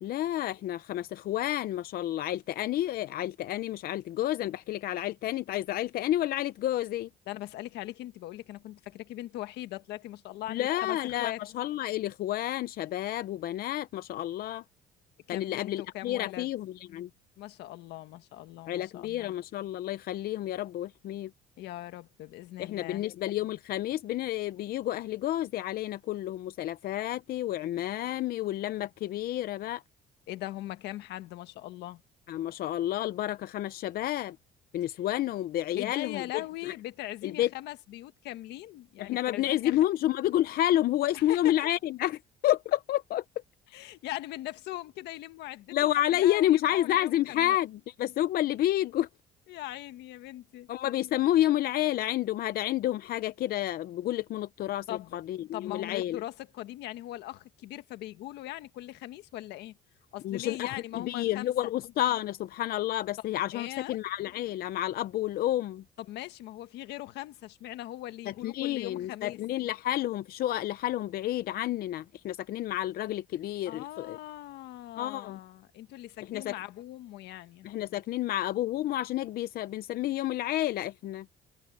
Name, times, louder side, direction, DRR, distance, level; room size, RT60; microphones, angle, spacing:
voice 1, 0.0-7.1 10.5-14.6 15.3-17.1 18.7-21.3 22.6-29.8 32.3-34.4 34.7-36.2 36.6-36.7 37.2-37.5 39.0-43.2 45.7-49.1 50.7-56.2 60.2-65.8 68.3-74.2 75.0-75.4 76.2-76.6 77.6-81.3, left 13 dB, 65° left, 0.6 m, -30 dB
voice 2, 7.3-11.4 15.3-16.5 17.4-19.4 21.6-23.1 30.3-32.0 35.7-39.8 41.1-41.5 43.7-47.5 49.5-50.7 54.9-55.2 55.5-59.8 60.1-61.7 63.5-64.0 66.0-69.4 73.6-77.7, left 15 dB, 80° left, 1.6 m, -40 dB
cardioid pair, 110°, 17 cm